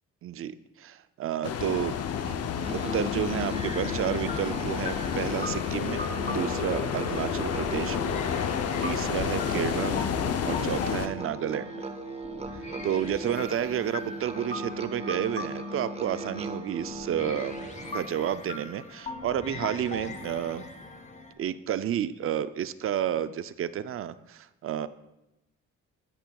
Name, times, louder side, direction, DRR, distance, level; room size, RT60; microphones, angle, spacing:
voice 1, 0.2-2.0 2.3-2.4 2.9-8.5 8.8-10.1 10.4-11.9 12.8-17.6 17.9-20.7 21.4-24.9, right 10 dB, 45° right, 15 dB, 0.4 m, -31 dB
sound 1, 1.4-11.1, left 8 dB, 55° left, 0.7 m, -30 dB
Musical instrument, 2.6-18.2, right 1 dB, 20° right, 0.7 m, -39 dB
sound 2, 3.1-21.3, left 3 dB, 25° left, 0.9 m, -41 dB
11.5 x 8.7 x 2.3 m, 0.92 s
cardioid pair, 90°, 30 cm